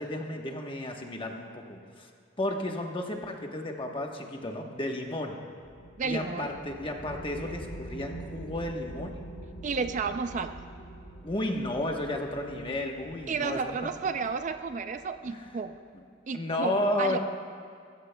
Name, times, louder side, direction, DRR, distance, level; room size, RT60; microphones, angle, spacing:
voice 1, 0.0-2.1 2.4-5.4 6.0-9.1 11.2-13.7 15.3-15.4 16.3-17.2, left 1 dB, 25° left, 2 dB, 1.1 m, -32 dB
sound 1, 5.6-15.6, right 2 dB, 50° left, 2.1 m, -45 dB
voice 2, 6.0-6.5 9.6-10.5 13.3-15.8 16.3-17.2, right 5 dB, 40° right, 9 dB, 0.4 m, -32 dB
24.0 x 14.0 x 2.2 m, 2.3 s
head